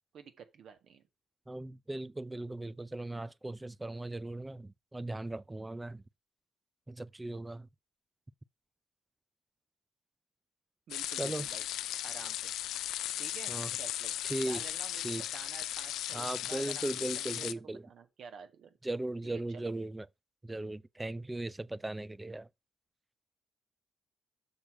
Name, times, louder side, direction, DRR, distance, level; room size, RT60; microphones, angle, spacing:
voice 1, 0.1-1.0 10.9-11.7 12.0-12.5 13.2-14.1 14.4-18.7 19.2-19.7, right 6 dB, 65° right, 1.5 m, -50 dB
voice 2, 1.5-6.0 6.9-7.7 11.2-11.5 13.5-13.7 14.2-14.6 15.0-15.2 16.1-17.8 18.8-20.1 20.4-22.5, right 2 dB, 15° right, 0.4 m, -38 dB
sound 1, 10.9-17.5, left 13 dB, 85° left, 0.4 m, -37 dB
6.5 x 6.3 x 4.9 m
cardioid pair, 90°, 0 cm